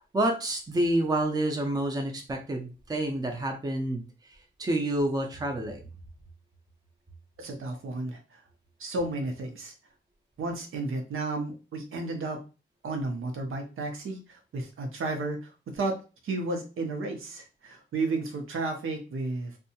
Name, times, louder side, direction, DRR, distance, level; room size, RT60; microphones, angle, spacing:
voice 1, 0.0-4.0 4.6-5.8, right 1 dB, 20° right, 2 dB, 0.5 m, -28 dB
voice 2, 7.4-8.4 8.8-9.7 10.4-12.4 12.8-16.0 16.2-19.6, right 2 dB, 85° right, 4 dB, 0.7 m, -33 dB
2.7 x 2.2 x 2.7 m, 0.32 s
wide cardioid pair, 115°, 21 cm